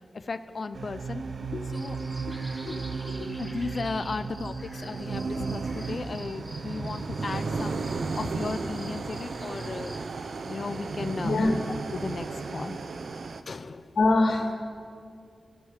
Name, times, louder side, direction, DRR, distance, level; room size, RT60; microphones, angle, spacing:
voice 1, 0.1-1.2 1.5-2.0 2.3-2.5 3.4-7.9 8.2-9.9 10.5-11.6 11.9-12.3 12.5-12.8 13.5-13.9, left 4 dB, 55° left, 9 dB, 1.0 m, -35 dB
sound 1, 0.7-13.4, right 4 dB, 65° right, 1.1 m, -34 dB
sound 2, 1.7-10.0, equal, 5° right, 5.3 m, -48 dB
voice 2, 11.2-11.5 13.9-14.5, left 2 dB, 75° left, 1 dB, 2.8 m, -25 dB
29.0 x 15.5 x 6.9 m, 2.3 s
wide cardioid pair, 80°, 0 cm